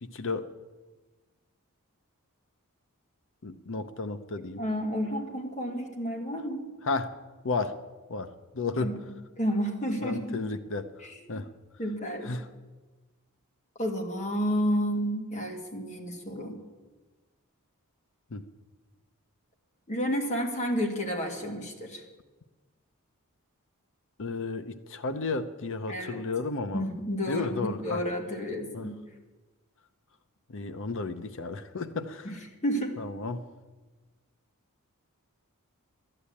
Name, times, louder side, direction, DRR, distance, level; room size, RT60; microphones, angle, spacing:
voice 1, 0.0-0.5 3.4-4.6 6.8-7.1 7.4-7.8 8.1-8.9 10.0-10.9 11.3-11.5 12.2-12.5 18.3-18.5 24.2-26.8 27.3-28.0 28.7-28.9 30.5-32.4 33.0-33.4, left 3 dB, 60° left, 11 dB, 0.7 m, -33 dB
voice 2, 4.6-6.7 8.8-9.0 9.4-10.4 11.0-11.4 11.8-12.4 13.8-16.6 19.9-22.0 25.9-26.2 26.7-28.9 32.2-32.3 32.6-32.9, equal, 35° left, 2 dB, 2.2 m, -31 dB
12.5 x 10.0 x 8.5 m, 1.2 s
head